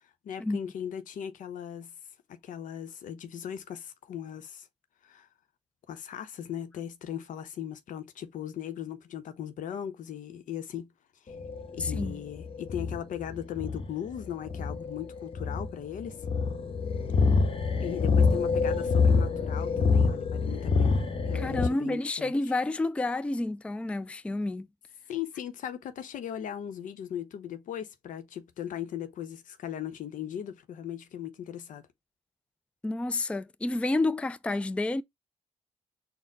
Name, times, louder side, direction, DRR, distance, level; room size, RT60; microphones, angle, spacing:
voice 1, 0.2-1.9 2.3-4.7 5.0-5.3 5.9-10.9 11.2-11.3 11.7-16.2 17.8-22.3 25.1-31.8, left 9 dB, 70° left, 0.7 m, -38 dB
sound 1, 11.3-21.7, left 4 dB, 40° left, 0.8 m, -26 dB
voice 2, 11.8-12.2 21.3-24.7 32.8-35.0, left 2 dB, 10° left, 0.3 m, -30 dB
4.1 x 2.0 x 3.9 m
supercardioid pair, 65°, 14 cm